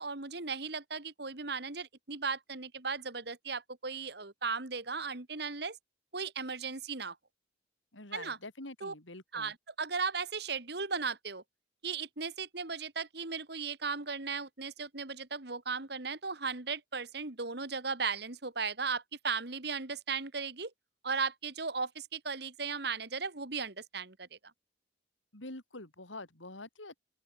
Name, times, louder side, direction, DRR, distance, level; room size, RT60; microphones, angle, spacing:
voice 1, 0.0-5.8 6.1-7.2 8.1-8.4 8.8-8.9 9.3-11.4 11.8-20.7 21.0-24.3, right 5 dB, 55° right, 2.0 m, -36 dB
voice 2, 7.9-9.5 25.3-27.0, left 2 dB, 80° left, 4.5 m, -46 dB
open air
head